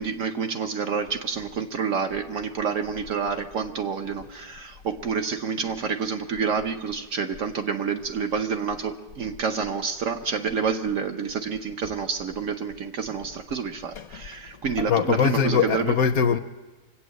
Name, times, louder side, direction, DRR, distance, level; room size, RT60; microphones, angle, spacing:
voice 1, 0.0-15.9, right 6 dB, 60° right, 1.0 m, -28 dB
voice 2, 14.8-16.4, left 7 dB, 65° left, 1.0 m, -22 dB
24.5 x 8.5 x 6.4 m
omnidirectional pair, 1.8 m